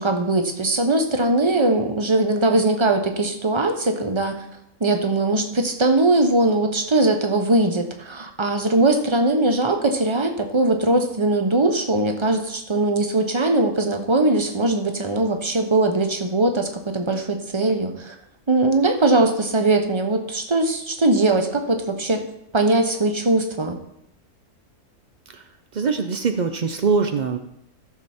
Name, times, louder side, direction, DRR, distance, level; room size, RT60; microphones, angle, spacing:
voice 1, 0.0-4.4 4.8-18.1 18.5-22.3 22.5-23.8, right 2 dB, 25° right, 5 dB, 0.8 m, -20 dB
voice 2, 25.7-27.4, right 5 dB, 75° right, 7 dB, 0.4 m, -23 dB
14.0 x 6.8 x 4.3 m, 0.78 s
omnidirectional pair, 1.6 m